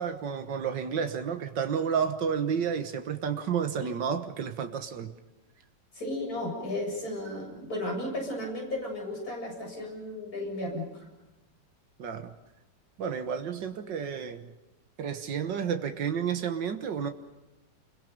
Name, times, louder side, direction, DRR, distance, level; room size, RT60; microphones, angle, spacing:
voice 1, 0.0-5.1 12.0-12.3 13.0-14.5 15.0-17.1, right 7 dB, 90° right, 7 dB, 2.0 m, -31 dB
voice 2, 5.9-11.1, left 1 dB, 55° left, -1 dB, 8.0 m, -34 dB
30.0 x 22.5 x 5.3 m, 1.0 s
omnidirectional pair, 1.9 m